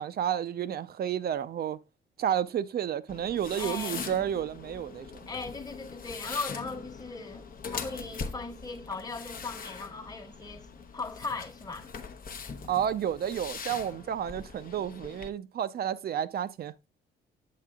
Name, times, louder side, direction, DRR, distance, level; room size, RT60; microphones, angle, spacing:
voice 1, 0.0-1.8 2.2-5.1 12.7-16.7, right 9 dB, 50° right, 0.5 m, -31 dB
sound 1, 3.1-15.3, left 5 dB, 45° left, 0.8 m, -42 dB
voice 2, 3.5-4.2 5.3-7.4 7.7-10.7 10.9-11.9, left 4 dB, 20° left, 1.2 m, -38 dB
7.6 x 7.5 x 2.3 m
cardioid pair, 90°, 20 cm